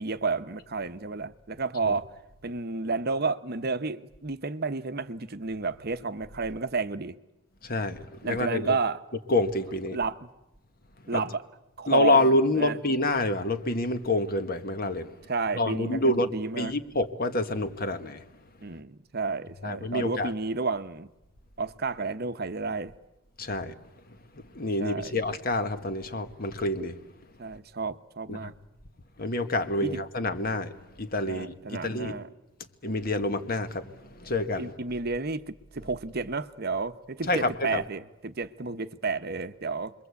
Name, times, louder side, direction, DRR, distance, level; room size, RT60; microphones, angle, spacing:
voice 1, 0.0-2.1 2.4-7.2 8.2-9.0 9.9-10.3 11.1-11.4 11.8-12.2 12.5-12.8 15.3-16.8 18.6-21.1 21.6-22.9 24.8-25.2 27.4-28.5 29.8-30.0 31.2-32.3 34.6-39.9, right 4 dB, 45° right, 0.9 m, -31 dB
voice 2, 7.6-8.0 8.2-8.8 9.3-10.0 11.1-11.2 11.9-15.1 15.6-18.2 19.6-20.3 23.4-23.7 24.5-27.0 28.3-28.4 29.2-30.7 31.0-32.1 32.8-33.9 34.1-34.7 37.3-37.8, left 2 dB, 45° left, 1.4 m, -27 dB
29.0 x 22.0 x 8.3 m
head